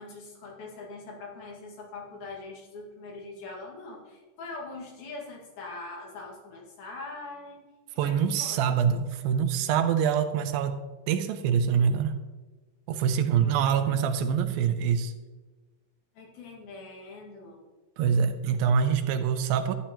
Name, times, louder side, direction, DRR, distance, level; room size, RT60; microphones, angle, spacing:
voice 1, 0.0-7.6 7.9-8.7 13.4-14.1 16.2-17.6, left 3 dB, 80° left, -2 dB, 3.8 m, -42 dB
voice 2, 8.0-10.8 11.1-12.2 12.9-15.1 18.0-19.8, right 7 dB, 85° right, 9 dB, 2.4 m, -25 dB
12.5 x 10.0 x 3.0 m, 1.3 s
omnidirectional pair, 4.2 m